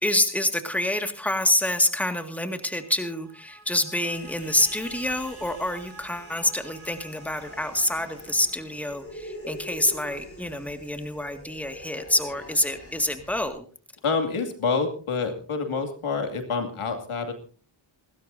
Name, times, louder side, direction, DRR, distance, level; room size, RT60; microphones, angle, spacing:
voice 1, 0.0-13.6, left 1 dB, 5° left, 7 dB, 1.9 m, -27 dB
sound 1, 2.5-9.4, right 4 dB, 70° right, 3.1 m, -51 dB
Human voice, 4.1-13.5, equal, 25° left, 5.6 m, -44 dB
voice 2, 14.0-17.3, left 4 dB, 75° left, 6 dB, 2.5 m, -27 dB
28.0 x 13.0 x 2.7 m, 0.39 s
cardioid pair, 65°, 50 cm